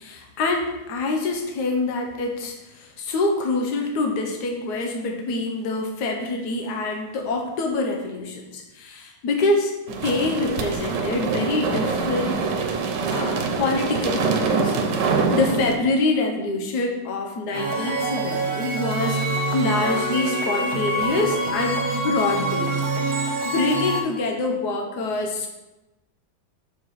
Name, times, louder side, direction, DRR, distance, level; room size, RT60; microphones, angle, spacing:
voice 1, 0.0-12.5 13.1-14.8 15.3-22.8 23.1-25.5, left 2 dB, 70° left, 2 dB, 1.4 m, -25 dB
sound 1, 9.9-15.7, right 4 dB, 85° right, 1.4 m, -24 dB
sound 2, 17.5-24.0, right 1 dB, 60° right, 1.5 m, -25 dB
6.6 x 4.7 x 4.2 m, 1.0 s
omnidirectional pair, 1.8 m